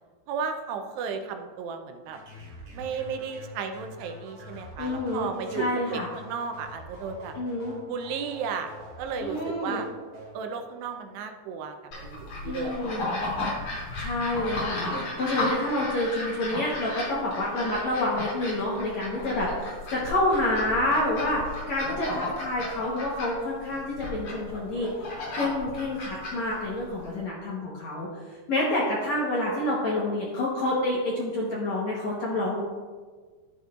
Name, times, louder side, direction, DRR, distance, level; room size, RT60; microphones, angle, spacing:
voice 1, 0.3-2.2 2.7-7.3 7.9-8.7 9.0-9.9 10.3-11.8 12.0-13.5, right 6 dB, 85° right, 6 dB, 2.8 m, -34 dB
sound 1, 2.0-10.4, left 1 dB, 50° right, 4.0 m, -46 dB
voice 2, 4.8-6.1 7.4-7.8 9.2-9.8 12.5-13.1 14.0-14.8 15.2-24.9 25.3-28.1 28.5-32.6, left 1 dB, 65° left, -4 dB, 1.8 m, -28 dB
sound 2, 11.9-27.1, left 2 dB, 40° left, 3.6 m, -34 dB
11.5 x 10.0 x 2.5 m, 1.5 s
omnidirectional pair, 4.8 m